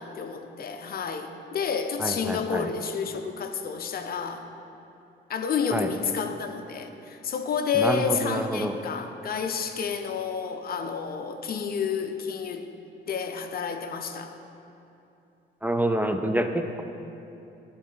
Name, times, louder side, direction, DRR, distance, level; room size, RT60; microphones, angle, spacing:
voice 1, 0.0-4.5 5.3-12.7 13.1-14.3, left 6 dB, 50° left, 7 dB, 0.6 m, -30 dB
voice 2, 2.0-2.7 5.7-5.9 7.8-8.7 15.6-16.8, right 1 dB, 10° right, 6 dB, 0.4 m, -27 dB
12.0 x 4.2 x 4.0 m, 2.8 s
cardioid pair, 90°, 20 cm